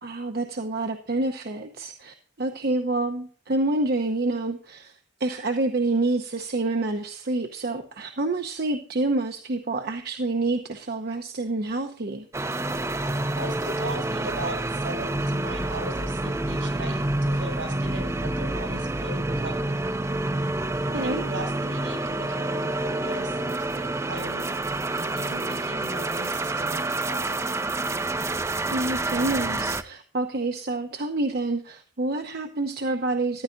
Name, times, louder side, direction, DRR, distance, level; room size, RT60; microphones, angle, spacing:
voice 1, 0.0-12.2 20.9-21.2 28.7-33.4, right 2 dB, 55° right, 5 dB, 0.8 m, -28 dB
sound 1, 12.3-29.8, right 2 dB, 15° right, 0.5 m, -28 dB
voice 2, 13.3-19.7 20.9-24.5 25.0-27.4, right 1 dB, 80° right, 3 dB, 5.7 m, -38 dB
14.5 x 10.0 x 2.5 m, 0.42 s
head